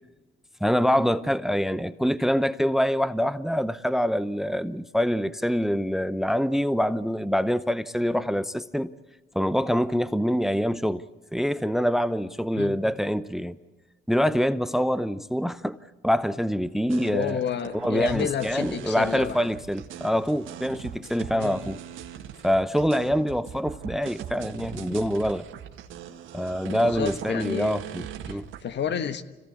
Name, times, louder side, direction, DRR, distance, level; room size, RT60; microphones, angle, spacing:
voice 1, 0.6-9.0 9.3-11.0 11.3-13.6 14.1-15.8 16.0-17.4 17.7-21.8 22.4-25.4 26.3-28.5, equal, ahead, 0.7 m, -25 dB
sound 1, 16.9-28.7, right 10 dB, 90° right, 1.9 m, -40 dB
voice 2, 17.1-19.5 21.3-21.6 26.7-27.7 28.3-29.2, left 8 dB, 60° left, 1.4 m, -30 dB
26.0 x 17.0 x 8.3 m
cardioid pair, 90°, 20 cm